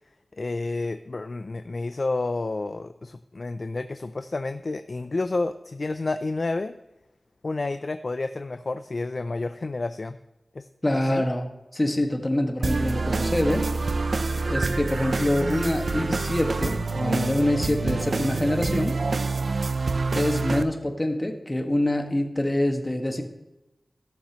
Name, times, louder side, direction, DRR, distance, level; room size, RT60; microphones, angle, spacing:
voice 1, 0.4-6.7 7.4-10.2 10.5-10.6 10.9-11.2, left 3 dB, 60° left, 9 dB, 0.5 m, -30 dB
voice 2, 10.8-11.5 11.7-13.7 14.5-19.0 20.1-23.2, left 1 dB, 25° left, 4 dB, 1.8 m, -25 dB
sound 1, 12.6-20.6, right 3 dB, 75° right, 0.6 m, -27 dB
16.5 x 7.1 x 3.1 m, 0.96 s
cardioid pair, 45°, 0 cm